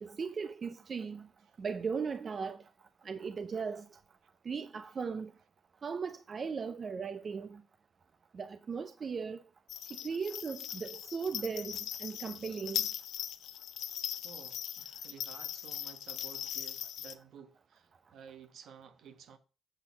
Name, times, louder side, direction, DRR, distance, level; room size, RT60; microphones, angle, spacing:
voice 1, 0.0-1.3 1.6-2.6 3.0-4.0 4.4-5.3 5.8-7.6 8.3-9.4 10.0-12.9, right 5 dB, 40° right, 0.5 m, -37 dB
sound 1, 9.7-17.1, left 10 dB, 75° left, 0.6 m, -40 dB
voice 2, 14.2-19.4, right 7 dB, 70° right, 1.2 m, -53 dB
7.8 x 4.2 x 5.8 m
cardioid pair, 90°, 0 cm